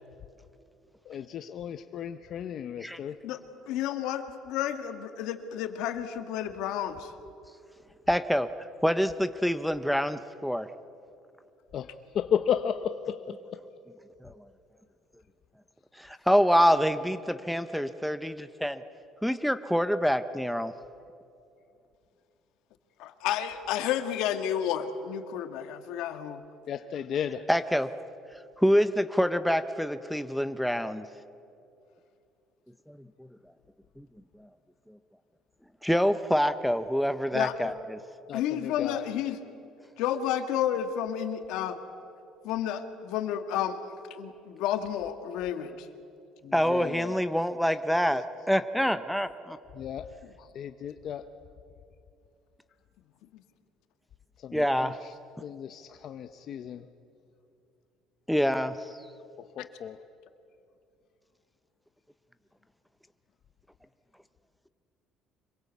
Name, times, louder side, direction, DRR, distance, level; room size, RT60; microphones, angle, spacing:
voice 1, 1.1-3.2 11.7-13.6 26.7-27.4 37.6-37.7 38.3-39.1 46.4-47.2 49.7-50.1 50.6-51.3 54.4-54.9 55.4-56.9 59.4-60.0, left 8 dB, 40° left, 8 dB, 0.7 m, -34 dB
voice 2, 3.7-7.1 23.0-26.4 37.3-37.5 38.3-39.4 40.0-41.8 42.4-43.8 44.1-45.7, left 10 dB, 70° left, 8 dB, 1.7 m, -31 dB
voice 3, 8.1-8.5 8.8-10.7 14.2-14.3 16.0-18.8 19.2-20.7 27.5-27.9 28.6-31.0 32.9-33.0 34.0-34.1 35.8-38.0 46.5-49.3 54.5-55.0 58.3-59.0, equal, ahead, 10 dB, 0.5 m, -26 dB
25.5 x 22.5 x 8.4 m, 2.6 s
cardioid pair, 175°, 0 cm